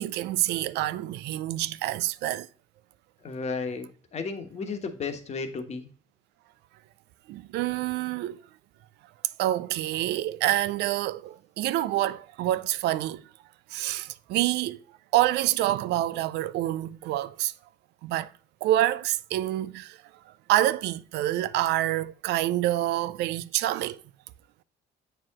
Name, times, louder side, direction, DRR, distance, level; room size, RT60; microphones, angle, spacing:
voice 1, 0.0-2.5 7.3-8.4 9.4-13.2 13.7-14.8 15.1-17.5 18.0-18.3 18.6-20.0 20.5-24.0, right 14 dB, 80° right, 0.5 m, -27 dB
voice 2, 3.2-5.9, left 4 dB, 40° left, 1.2 m, -34 dB
7.8 x 4.6 x 3.6 m
cardioid pair, 110°, 17 cm